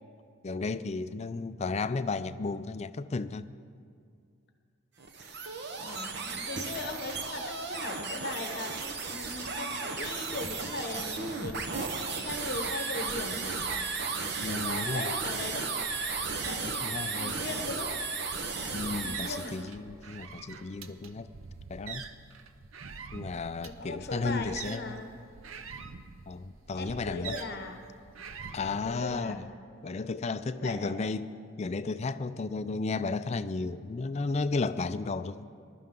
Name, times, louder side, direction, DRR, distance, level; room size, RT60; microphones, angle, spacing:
voice 1, 0.4-3.5 14.4-15.1 16.6-17.4 18.7-21.3 21.7-22.0 23.1-25.0 26.3-27.4 28.5-29.5 29.8-31.3 31.6-35.5, left 3 dB, 30° left, 12 dB, 0.4 m, -33 dB
sound 1, 5.0-19.6, right 4 dB, 55° right, 1.0 m, -34 dB
voice 2, 5.8-11.7 12.1-13.6 14.4-15.7 16.4-17.9 18.6-19.6 23.1-23.2 23.6-25.1 26.8-27.8 28.8-29.3 30.6-30.9, left 2 dB, 50° left, 5 dB, 1.0 m, -39 dB
sound 2, 13.6-29.2, right 5 dB, 80° right, 0.7 m, -46 dB
20.5 x 12.0 x 3.8 m, 2.3 s
head